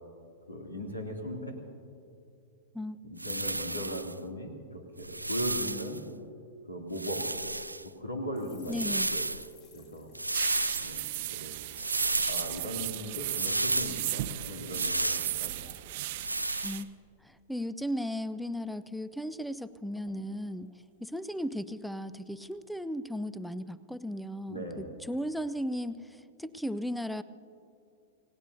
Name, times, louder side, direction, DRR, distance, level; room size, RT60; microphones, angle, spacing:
voice 1, 0.5-1.6 3.0-6.0 6.7-7.3 7.8-9.2 9.7-10.1 10.8-11.6 12.0-15.6 24.5-24.9, equal, 80° left, 1 dB, 2.7 m, -38 dB
sound 1, 3.2-4.1 5.0-6.0 6.9-7.9 8.6-9.5 10.1-11.0 11.8-12.6 13.3-14.0 14.7-15.4 16.2-16.8, right 2 dB, 85° right, 0.4 m, -32 dB
sound 2, 8.3-11.9 12.2-12.4 12.7-13.3 13.8-14.6 14.9-16.6 16.9-17.1 17.4-18.0 18.3-18.4 18.7-19.4 19.6-19.7 19.9-21.8 22.3-22.6, left 4 dB, 50° left, 5.0 m, -62 dB
voice 2, 8.6-9.1 16.6-16.9 17.2-20.7 21.0-27.2, equal, ahead, 16 dB, 0.5 m, -36 dB
sound 3, 10.3-16.8, right 16 dB, 50° right, 0.6 m, -36 dB
29.0 x 17.5 x 2.7 m, 2.6 s
figure-of-eight pair, 100°, 0 cm